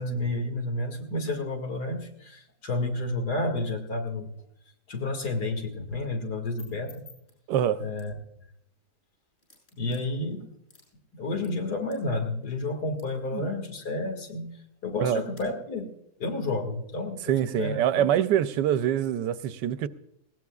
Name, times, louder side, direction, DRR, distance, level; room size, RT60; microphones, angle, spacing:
voice 1, 0.0-4.3 4.9-7.0 7.8-8.1 9.8-10.4 11.1-14.5 14.8-15.9 16.2-18.1, left 2 dB, 65° left, 3 dB, 2.7 m, -31 dB
sound 1, 6.2-15.5, left 4 dB, 35° left, 7.6 m, -60 dB
voice 2, 7.5-7.8 13.3-13.5 15.0-15.2 17.3-19.9, right 10 dB, 80° right, 13 dB, 1.3 m, -25 dB
20.0 x 17.5 x 2.4 m, 0.77 s
omnidirectional pair, 1.9 m